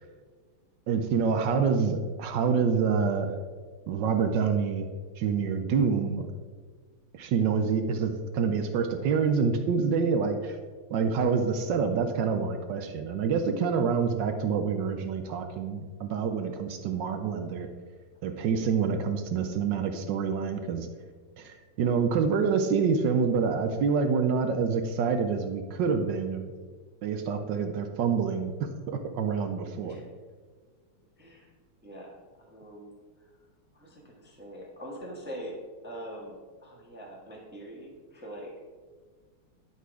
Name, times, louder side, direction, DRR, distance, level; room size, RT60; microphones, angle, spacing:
voice 1, 0.9-3.4 3.9-4.9 5.2-6.3 7.1-10.6 10.9-17.7 18.2-20.9 21.4-26.5 27.0-28.5 28.9-30.0, right 6 dB, 70° right, 7 dB, 1.1 m, -27 dB
voice 2, 20.6-21.0 27.0-27.3 29.8-30.1 31.2-31.5 31.8-33.3 33.7-35.6 35.8-38.5, equal, 5° right, -1 dB, 0.8 m, -44 dB
11.0 x 4.1 x 4.7 m, 1.5 s
omnidirectional pair, 2.4 m